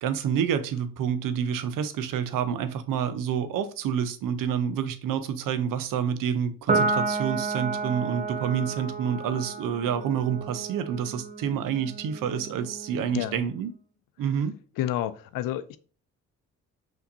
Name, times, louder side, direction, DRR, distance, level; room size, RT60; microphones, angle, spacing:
voice 1, 0.0-13.7 14.2-14.5, right 8 dB, 70° right, 0.6 m, -28 dB
Piano, 6.7-13.4, right 3 dB, 20° right, 0.6 m, -31 dB
voice 2, 14.8-15.8, left 12 dB, 70° left, 0.5 m, -29 dB
5.6 x 2.8 x 2.7 m
hypercardioid pair, 50°, 34 cm